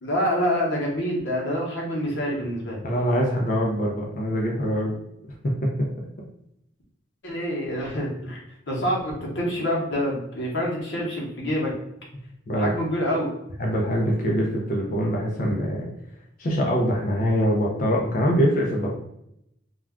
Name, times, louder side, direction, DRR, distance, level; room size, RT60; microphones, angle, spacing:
voice 1, 0.0-2.8 7.2-8.4 8.7-11.8 12.6-13.3, equal, 70° left, -3 dB, 0.8 m, -26 dB
voice 2, 2.8-5.0 5.8-5.9 12.5-12.7 13.6-15.9 16.4-19.0, equal, 45° left, -3 dB, 0.4 m, -23 dB
2.3 x 2.2 x 3.5 m, 0.80 s
head